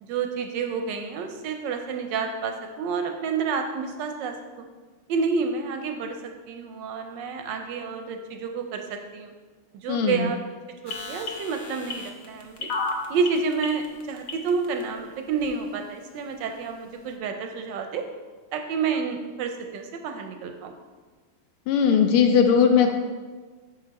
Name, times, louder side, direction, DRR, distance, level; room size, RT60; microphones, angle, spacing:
voice 1, 0.0-4.7 5.1-9.3 9.8-10.4 10.8-12.7 13.1-18.0 18.5-20.8, right 5 dB, 75° right, 5 dB, 1.1 m, -29 dB
voice 2, 9.9-10.3 21.7-22.9, left 6 dB, 90° left, 4 dB, 1.5 m, -19 dB
sound 1, 10.9-14.8 15.4-15.5, left 4 dB, 65° left, 0.8 m, -32 dB
5.7 x 5.4 x 4.0 m, 1.4 s
omnidirectional pair, 2.4 m